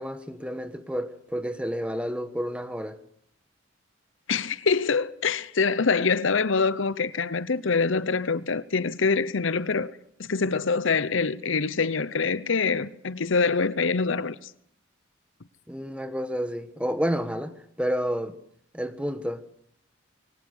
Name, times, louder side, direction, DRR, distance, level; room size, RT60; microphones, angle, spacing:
voice 1, 0.0-3.0 15.7-18.4 18.7-19.4, equal, 5° right, 1.4 m, -30 dB
voice 2, 4.3-14.5, left 4 dB, 70° left, 0.8 m, -25 dB
22.5 x 17.5 x 8.3 m
head